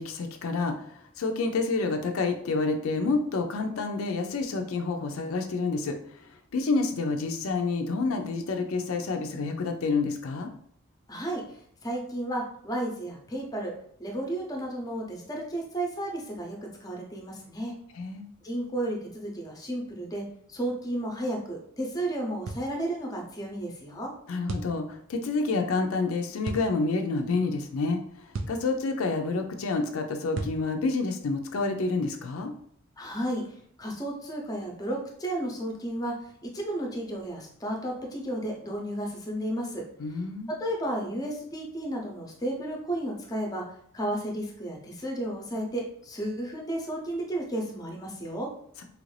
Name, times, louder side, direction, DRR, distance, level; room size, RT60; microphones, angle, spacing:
voice 1, 0.0-5.9 6.5-10.5 17.9-18.3 24.3-28.0 28.5-32.5 40.0-40.5, left 3 dB, 85° left, 5 dB, 0.4 m, -28 dB
voice 2, 11.1-11.4 11.8-13.7 14.0-17.7 18.4-20.2 20.5-24.1 33.0-33.4 33.8-36.1 36.4-39.8 40.6-43.6 43.9-48.5, right 1 dB, 20° left, 0 dB, 0.6 m, -33 dB
sound 1, 22.5-22.7 24.5-24.8 26.4-26.7 28.3-28.6 30.3-30.6, right 3 dB, 65° right, 0.4 m, -33 dB
3.1 x 2.5 x 3.2 m, 0.63 s
head